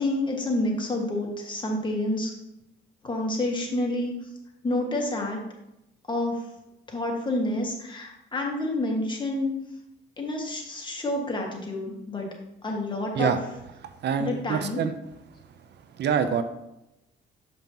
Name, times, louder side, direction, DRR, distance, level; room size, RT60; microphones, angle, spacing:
voice 1, 0.0-2.3 3.0-4.3 4.6-5.4 6.1-6.5 6.9-9.5 10.2-12.3 12.6-13.4 14.2-14.9, left 1 dB, 25° left, -1 dB, 1.6 m, -28 dB
voice 2, 14.0-14.9 16.0-16.4, right 7 dB, 60° right, 9 dB, 0.5 m, -25 dB
7.0 x 5.3 x 2.9 m, 0.87 s
cardioid pair, 90°, 20 cm